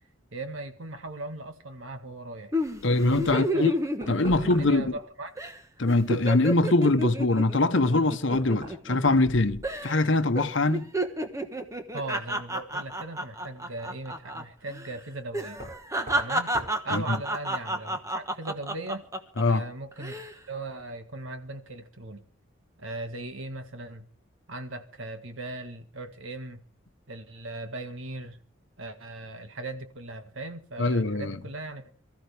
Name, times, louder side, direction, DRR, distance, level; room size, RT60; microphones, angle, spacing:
voice 1, 0.3-2.5 3.3-3.7 4.4-5.3 11.9-15.6 16.2-16.5 16.8-19.0 19.5-22.2 22.8-24.1 24.5-26.6 27.1-28.4 28.8-32.0, right 2 dB, 70° right, 1.8 m, -38 dB
sound 1, 2.5-5.1 5.4-5.6 5.9-9.3 9.6-10.1 10.4-14.4 14.7-14.9 15.3-19.4 19.9-20.3, right 1 dB, 15° right, 1.2 m, -31 dB
voice 2, 2.8-3.7 4.1-4.8 5.8-10.8 16.9-17.2 19.4-19.6 30.8-31.4, left 2 dB, 60° left, 1.0 m, -23 dB
Knock, 4.0-5.0 7.4-7.5 8.3-10.1 10.4-11.0 12.7-12.8 15.5-16.3 16.5-16.8, equal, 35° right, 7.3 m, -41 dB
24.5 x 14.0 x 3.5 m
head